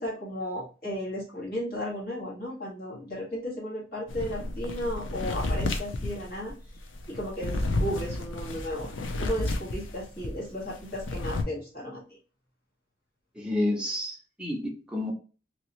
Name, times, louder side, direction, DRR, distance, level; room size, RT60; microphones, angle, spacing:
voice 1, 0.0-6.5 7.1-8.9 9.2-12.2, equal, 50° left, -5 dB, 1.6 m, -34 dB
sound 1, 4.1-10.4 10.7-11.4, left 2 dB, 90° left, 0.6 m, -31 dB
voice 2, 13.4-15.1, left 1 dB, 5° right, -2 dB, 0.7 m, -30 dB
3.0 x 2.9 x 3.0 m, 0.36 s
head